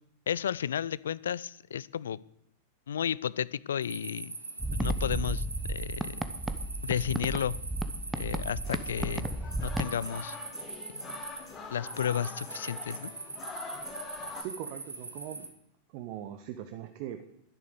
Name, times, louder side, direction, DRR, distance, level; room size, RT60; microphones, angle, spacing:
voice 1, 0.3-2.2 2.9-4.3 4.7-6.3 6.8-7.6 8.2-10.4 10.9-11.1 11.7-13.1, left 9 dB, 65° left, 21 dB, 0.4 m, -33 dB
sound 1, 3.8-15.5, right 3 dB, 80° right, 1.9 m, -42 dB
sound 2, 4.6-9.9, right 1 dB, 5° right, 1.0 m, -34 dB
sound 3, 8.6-14.4, left 5 dB, 25° left, 2.7 m, -44 dB
voice 2, 14.4-15.5 15.9-17.2, right 11 dB, 45° right, 8 dB, 0.9 m, -40 dB
12.0 x 10.5 x 6.7 m, 0.77 s
figure-of-eight pair, 90°, 0 cm